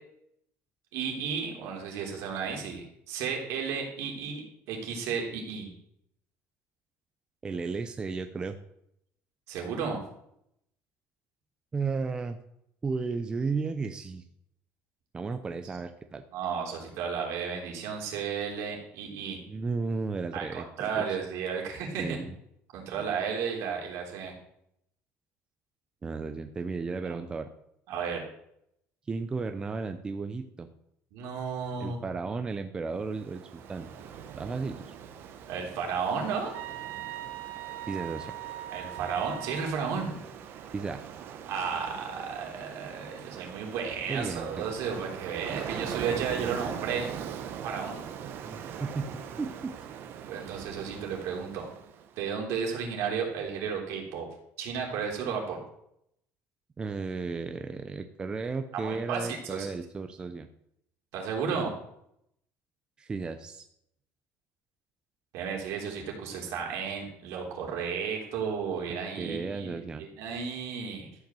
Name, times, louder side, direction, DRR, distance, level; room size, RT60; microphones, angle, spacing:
voice 1, 0.9-5.7 9.5-10.0 16.3-19.4 20.3-22.2 22.7-24.3 27.1-27.2 27.9-28.2 31.1-32.0 35.5-36.6 38.7-40.2 41.5-47.1 47.6-48.0 50.3-51.7 52.2-54.3 54.6-55.6 58.7-59.7 61.1-61.7 65.3-71.1, right 6 dB, 65° right, 0 dB, 3.6 m, -33 dB
voice 2, 7.4-8.6 11.7-12.4 12.8-14.2 15.1-16.2 19.5-21.2 22.0-22.3 23.0-23.1 26.0-27.5 29.1-30.7 31.8-33.9 34.4-34.9 37.9-38.3 40.7-41.1 44.1-44.6 48.3-49.1 49.4-49.7 56.8-60.5 63.0-63.7 68.9-70.0, right 4 dB, 15° right, 8 dB, 0.6 m, -34 dB
Ocean, 33.0-52.1, right 8 dB, 45° right, 1.1 m, -41 dB
sound 1, 36.5-39.8, right 14 dB, 85° right, 1.3 m, -40 dB
13.0 x 5.9 x 7.6 m, 0.75 s
cardioid pair, 175°, 5 cm